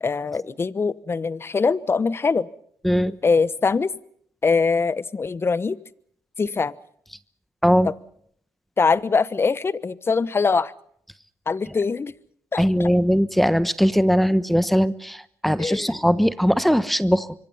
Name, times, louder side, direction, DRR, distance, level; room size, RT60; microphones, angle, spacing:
voice 1, 0.0-2.5 3.2-3.9 4.4-5.8 6.4-6.7 7.8-7.9 8.8-10.7 11.5-12.1 12.5-12.9 15.6-15.9, left 4 dB, 35° left, 17 dB, 1.1 m, -22 dB
voice 2, 2.8-3.1 7.6-7.9 12.6-17.3, equal, ahead, 13 dB, 1.2 m, -20 dB
25.5 x 23.5 x 5.6 m, 0.66 s
supercardioid pair, 60°, 7 cm